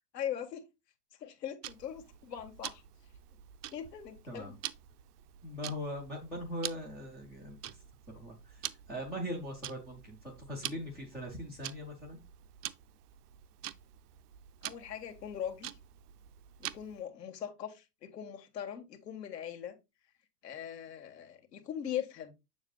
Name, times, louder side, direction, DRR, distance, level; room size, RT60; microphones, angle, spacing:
voice 1, 0.1-0.6 1.2-2.8 3.7-4.5 14.6-15.8 16.6-19.8 20.4-22.3, left 9 dB, 75° left, 1.8 m, -40 dB
Tick-tock, 1.6-17.0, right 13 dB, 65° right, 0.7 m, -46 dB
voice 2, 5.4-7.8 8.1-12.2, equal, 5° left, 0.3 m, -41 dB
7.1 x 6.4 x 2.3 m
hypercardioid pair, 125°, 49 cm